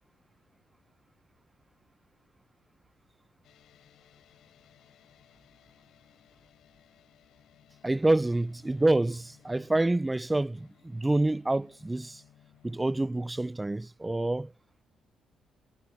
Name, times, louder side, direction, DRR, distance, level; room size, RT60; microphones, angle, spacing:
sound 1, 3.4-13.5, left 11 dB, 75° left, 7.7 m, -61 dB
voice 1, 7.8-12.2 12.6-14.5, right 2 dB, 15° right, 0.5 m, -27 dB
cardioid pair, 90°, 0 cm